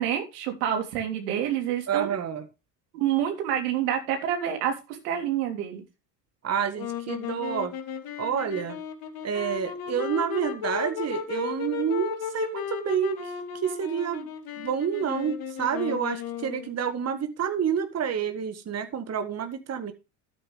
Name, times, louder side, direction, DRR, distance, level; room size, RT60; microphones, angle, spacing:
voice 1, 0.0-2.1 2.9-5.8, right 10 dB, 75° right, 3.4 m, -28 dB
voice 2, 1.9-2.4 6.4-7.7 8.2-8.8 9.2-13.3 13.6-14.3 14.6-19.9, right 7 dB, 35° right, 1.7 m, -28 dB
sound 1, 6.7-16.7, left 8 dB, 50° left, 3.0 m, -35 dB
12.5 x 9.1 x 3.3 m
hypercardioid pair, 75°, 46 cm